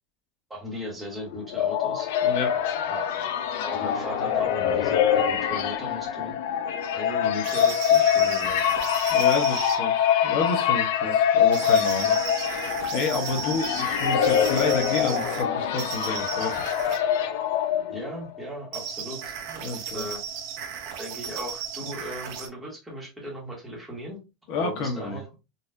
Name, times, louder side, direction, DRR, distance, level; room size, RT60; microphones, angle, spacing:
voice 1, 0.5-2.1 2.9-3.2 3.6-6.3 6.9-8.6 17.9-19.2 19.7-20.2 21.0-24.2 24.6-25.3, equal, 5° right, 1.2 m, -37 dB
sound 1, 1.3-18.2, left 9 dB, 70° left, 0.5 m, -24 dB
voice 2, 2.2-2.6 9.1-16.6 19.5-20.1 24.5-25.2, left 4 dB, 45° left, 0.9 m, -30 dB
sound 2, 7.4-9.8 11.5-15.4 15.8-17.0 18.7-22.5, right 8 dB, 50° right, 0.7 m, -35 dB
4.0 x 2.4 x 2.6 m
supercardioid pair, 180°, 0 cm